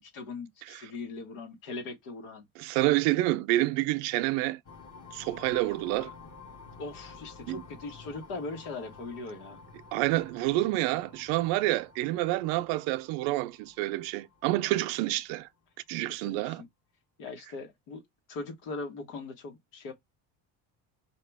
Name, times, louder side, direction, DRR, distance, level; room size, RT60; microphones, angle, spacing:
voice 1, 0.0-2.5 6.8-9.6 16.2-16.7 17.2-18.0 18.3-19.9, left 3 dB, 80° left, 1.7 m, -40 dB
voice 2, 2.6-4.6 5.1-6.1 7.5-7.6 9.9-15.5 15.9-16.6, right 17 dB, 80° right, 0.6 m, -28 dB
sound 1, 4.6-15.2, left 4 dB, 35° left, 1.2 m, -51 dB
4.7 x 2.9 x 3.5 m
supercardioid pair, 95°, 41 cm